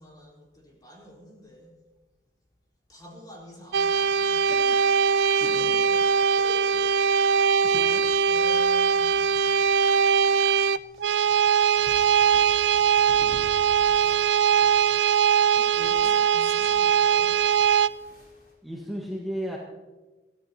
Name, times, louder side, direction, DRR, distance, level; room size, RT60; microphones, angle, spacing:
voice 1, 0.0-1.7 2.9-4.7 5.3-6.0 6.3-6.9 7.4-7.9 8.3-9.6 10.2-10.7 10.9-11.2 11.7-11.9 12.4-13.6 14.0-14.2 15.5-17.4, left 1 dB, 25° left, -3 dB, 4.1 m, -47 dB
sound 1, 3.7-17.9, right 7 dB, 80° right, 0.4 m, -21 dB
voice 2, 4.5-4.8 5.5-5.7 7.7-8.1 18.6-19.6, equal, ahead, -3 dB, 1.6 m, -35 dB
sound 2, 5.6-18.5, equal, 55° left, 4.3 m, -50 dB
23.5 x 15.0 x 2.9 m, 1.2 s
head